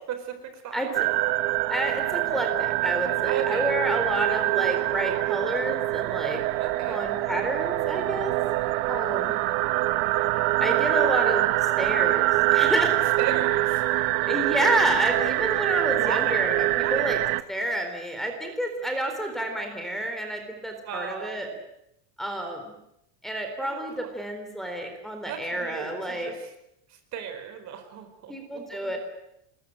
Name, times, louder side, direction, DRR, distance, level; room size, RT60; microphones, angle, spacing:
voice 1, 0.1-1.0 3.2-3.7 6.6-7.0 13.2-13.9 15.9-16.4 16.7-17.0 20.8-21.6 23.6-24.1 25.3-26.5 26.9-29.0, right 8 dB, 40° right, 8 dB, 4.5 m, -36 dB
sound 1, 0.9-17.4, right 18 dB, 70° right, 1.4 m, -25 dB
voice 2, 1.7-6.4 6.9-8.3 8.9-9.4 10.6-11.5 11.8-13.2 14.3-17.2 17.5-21.5 22.2-22.7 23.2-26.3 28.3-29.0, right 1 dB, ahead, 2 dB, 4.1 m, -29 dB
27.5 x 21.5 x 9.1 m, 0.81 s
cardioid pair, 170°, 43 cm